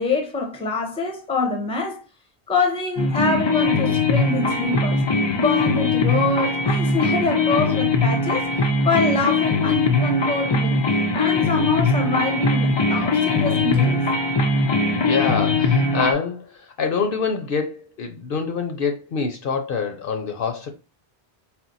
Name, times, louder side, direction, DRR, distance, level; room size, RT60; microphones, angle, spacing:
voice 1, 0.0-2.0 2.5-5.0 5.3-8.5 8.8-10.8 11.1-14.0, left 3 dB, 5° left, 0.6 m, -25 dB
sound 1, 3.0-16.1, left 3 dB, 45° left, 0.3 m, -21 dB
voice 2, 15.0-20.7, left 5 dB, 60° left, 0.8 m, -26 dB
4.3 x 2.0 x 3.9 m
omnidirectional pair, 1.1 m